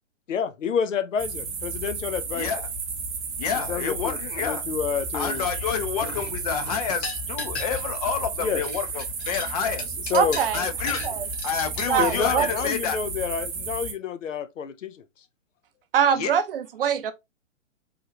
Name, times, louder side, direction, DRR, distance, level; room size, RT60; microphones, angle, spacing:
voice 1, 0.3-2.5 3.7-5.4 8.4-8.6 10.1-10.4 12.0-15.0, left 7 dB, 80° left, 0.6 m, -28 dB
sound 1, 1.2-13.9, right 4 dB, 20° right, 0.8 m, -32 dB
voice 2, 2.3-2.7 3.4-4.6 5.1-10.0 10.5-11.0 11.4-13.0 16.1-16.3, left 7 dB, 30° left, 0.5 m, -29 dB
sound 2, 5.2-5.7 6.0-8.1 8.3-11.9, left 3 dB, 60° left, 1.4 m, -36 dB
voice 3, 10.1-10.6 11.0-11.3 11.9-12.5 15.9-17.1, right 8 dB, 50° right, 0.5 m, -23 dB
3.6 x 2.3 x 2.9 m
hypercardioid pair, 130°, 38 cm